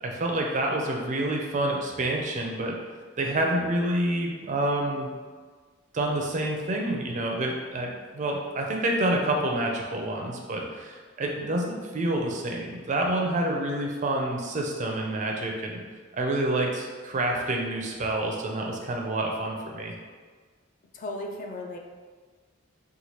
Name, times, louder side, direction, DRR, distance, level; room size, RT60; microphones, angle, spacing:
voice 1, 0.0-2.8 3.2-5.1 5.9-15.8 16.1-19.9, right 1 dB, 40° right, 0 dB, 0.4 m, -28 dB
voice 2, 20.9-21.8, left 1 dB, 40° left, 2 dB, 0.3 m, -35 dB
3.1 x 2.2 x 2.8 m, 1.5 s
head